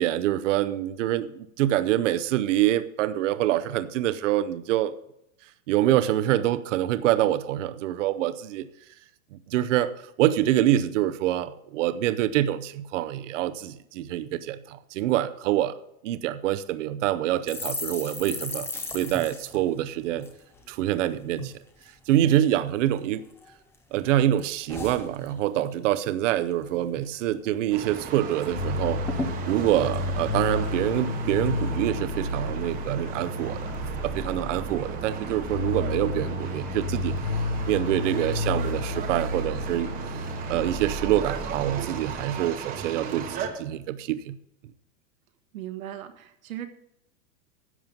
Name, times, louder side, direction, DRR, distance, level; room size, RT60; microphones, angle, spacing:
voice 1, 0.0-4.9 5.7-8.7 9.3-9.9 10.2-15.7 16.0-18.7 18.9-20.3 20.7-21.5 22.1-23.2 23.9-29.0 29.5-33.7 34.0-37.2 37.6-39.9 40.5-44.3, right 13 dB, 65° right, 13 dB, 0.7 m, -25 dB
sound 1, 17.5-21.0 21.3-21.5 21.8-22.4 23.0-23.8 24.0-25.7 26.0-26.3 26.5-27.1 27.5-27.6 27.8-28.5 28.8-28.9 29.1-31.0 31.4-31.8, left 3 dB, 5° left, 0.5 m, -37 dB
sound 2, 27.7-43.5, right 7 dB, 20° right, 1.0 m, -37 dB
sound 3, 28.5-42.6, left 2 dB, 65° left, 2.0 m, -32 dB
voice 2, 45.5-46.7, right 12 dB, 85° right, 7 dB, 1.5 m, -37 dB
11.0 x 7.4 x 5.3 m, 0.78 s
supercardioid pair, 165°, 40 cm